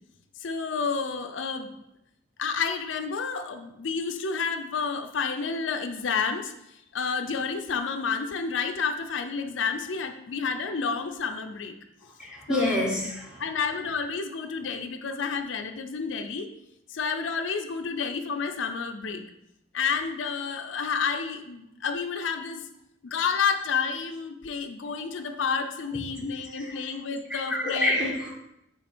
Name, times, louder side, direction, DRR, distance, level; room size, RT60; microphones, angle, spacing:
voice 1, 0.4-1.7 2.4-11.7 12.5-12.7 13.4-16.5 16.9-19.2 19.7-22.6 23.0-28.2, left 5 dB, 80° left, 7 dB, 0.5 m, -30 dB
voice 2, 12.2-13.4 25.0-25.1 25.9-26.0 26.4-26.8 27.3-28.4, left 1 dB, 5° right, -2 dB, 1.0 m, -28 dB
6.0 x 3.7 x 4.3 m, 0.82 s
head